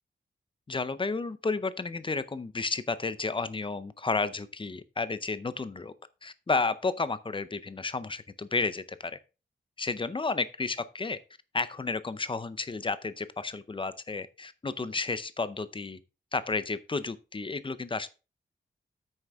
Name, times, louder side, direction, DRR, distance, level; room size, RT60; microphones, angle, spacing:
voice 1, 0.7-5.9 6.2-9.2 9.8-11.2 11.5-16.0 16.3-18.1, left 3 dB, 25° left, 0.6 m, -32 dB
9.1 x 6.3 x 3.5 m
wide cardioid pair, 145°, 19 cm